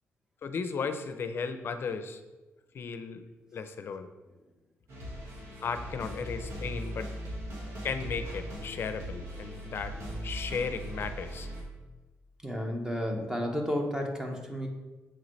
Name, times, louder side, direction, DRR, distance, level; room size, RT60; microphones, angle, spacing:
voice 1, 0.4-2.2 2.7-3.2 3.5-4.1 5.6-7.1 7.8-9.9 10.2-11.5, left 5 dB, 55° left, 9 dB, 0.5 m, -35 dB
sound 1, 4.9-11.6, equal, 85° right, 1.6 m, -39 dB
voice 2, 12.4-14.7, equal, 10° right, 2 dB, 1.0 m, -32 dB
7.6 x 3.9 x 3.2 m, 1.2 s
cardioid pair, 90°, 5 cm